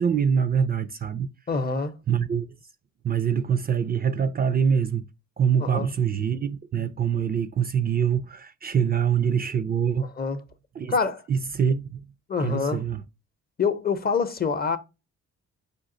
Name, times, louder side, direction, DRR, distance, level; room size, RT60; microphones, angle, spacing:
voice 1, 0.0-1.3 2.1-2.5 3.0-5.1 5.4-10.1 10.8-10.9 11.3-12.0 12.4-13.0, right 7 dB, 30° right, 0.4 m, -24 dB
voice 2, 1.5-2.0 5.6-5.9 10.0-10.4 10.9-11.2 12.3-12.8 13.6-14.8, left 5 dB, 30° left, 0.7 m, -26 dB
5.0 x 2.4 x 3.7 m
cardioid pair, 90°, 30 cm